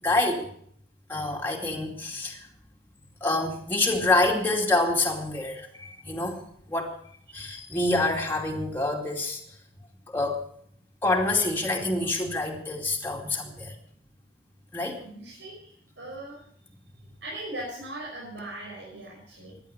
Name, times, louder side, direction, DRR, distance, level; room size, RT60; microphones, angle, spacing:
voice 1, 0.0-0.5 1.1-2.4 3.2-6.4 6.7-6.9 7.3-9.4 10.1-10.4 11.0-13.7 14.7-15.0, left 2 dB, 10° left, 0 dB, 2.4 m, -26 dB
voice 2, 15.0-15.7 16.0-16.5 17.2-19.5, right 1 dB, 85° right, -4 dB, 5.8 m, -39 dB
16.5 x 11.0 x 6.8 m, 0.62 s
head